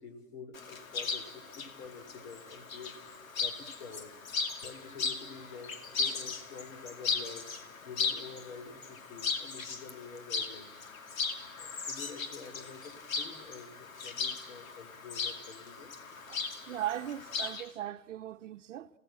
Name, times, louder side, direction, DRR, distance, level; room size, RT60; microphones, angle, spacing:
voice 1, 0.0-4.2 4.6-7.5 7.8-10.8 11.6-15.9, left 5 dB, 50° left, 3.1 m, -48 dB
Chirp tweet, 0.5-17.6, left 5 dB, 80° left, 2.5 m, -37 dB
voice 2, 16.3-18.9, right 12 dB, 65° right, 0.9 m, -38 dB
29.5 x 17.0 x 8.9 m
hypercardioid pair, 170°, 40 cm